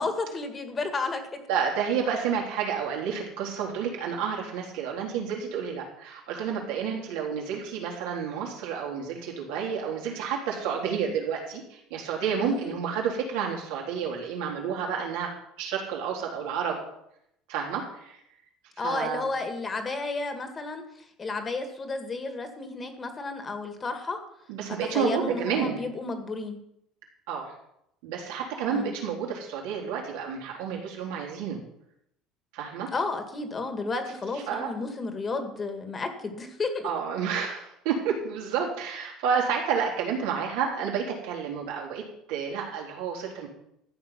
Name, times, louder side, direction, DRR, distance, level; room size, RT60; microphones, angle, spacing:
voice 1, 0.0-1.4 12.4-12.7 18.8-20.8 21.2-24.2 24.9-26.6 28.7-28.9 32.9-36.9, left 3 dB, 20° left, 7 dB, 1.7 m, -32 dB
voice 2, 1.5-16.8 17.5-18.2 18.8-19.3 24.5-25.8 27.3-27.6 28.0-31.6 32.5-32.9 34.3-34.7 36.8-43.5, right 7 dB, 85° right, -1 dB, 3.9 m, -30 dB
13.5 x 8.0 x 6.0 m, 0.76 s
cardioid pair, 150°, 0 cm